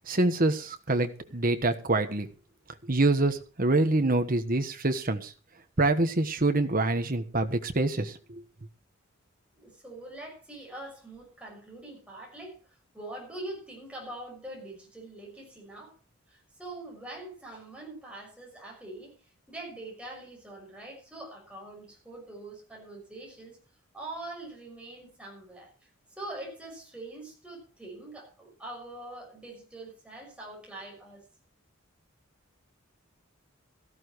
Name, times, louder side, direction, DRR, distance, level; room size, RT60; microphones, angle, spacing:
voice 1, 0.1-2.3 2.9-5.3 5.8-8.4, right 2 dB, 40° right, 7 dB, 1.3 m, -26 dB
voice 2, 9.6-12.6 12.9-15.9 16.3-19.1 19.5-23.6 23.9-25.7 26.2-31.2, right 2 dB, 5° right, -1 dB, 6.3 m, -43 dB
18.0 x 14.0 x 3.1 m, 0.36 s
head